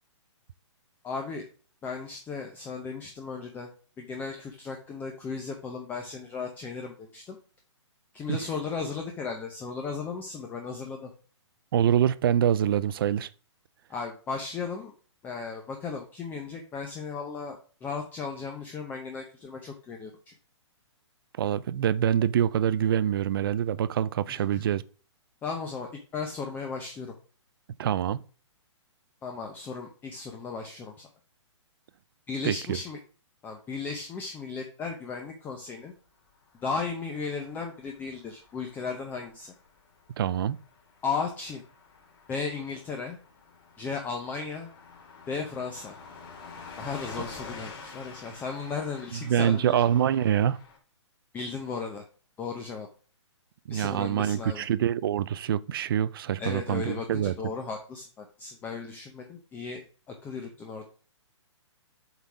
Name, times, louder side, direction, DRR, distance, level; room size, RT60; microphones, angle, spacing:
voice 1, 1.0-1.5 1.8-3.7 4.0-7.4 8.1-11.1 13.9-14.9 15.2-20.3 24.3-24.6 25.4-27.1 29.2-31.1 32.3-33.0 33.4-35.9 36.6-39.5 41.0-41.6 42.3-43.2 43.8-44.7 45.3-46.0 46.8-49.8 51.3-52.0 52.4-52.9 53.7-54.7 56.4-59.8 60.1-60.9, left 5 dB, 10° left, 0.8 m, -35 dB
voice 2, 11.7-13.3 21.4-24.8 27.8-28.2 32.4-32.8 40.2-40.6 49.3-50.6 53.7-57.3, right 10 dB, 50° right, 0.5 m, -25 dB
Car passing by / Truck, 36.4-50.8, left 4 dB, 45° left, 2.7 m, -48 dB
8.1 x 4.0 x 4.8 m
hypercardioid pair, 155°, 16 cm